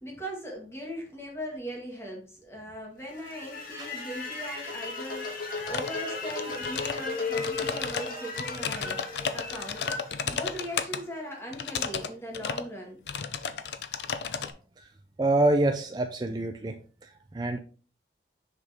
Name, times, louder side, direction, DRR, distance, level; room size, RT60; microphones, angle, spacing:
voice 1, 0.0-5.3 5.7-9.0 9.3-9.9 10.2-13.0, equal, 15° left, -1 dB, 1.9 m, -39 dB
sound 1, 3.1-11.2, left 3 dB, 50° left, 1.6 m, -36 dB
sound 2, 5.7-6.0 6.3-7.0 7.3-11.0 11.5-12.1 12.3-12.7 13.1-14.5, left 6 dB, 75° left, 0.6 m, -33 dB
voice 2, 15.2-16.7 17.0-17.6, right 2 dB, 25° right, 5 dB, 0.4 m, -26 dB
6.5 x 5.1 x 3.6 m, 0.40 s
head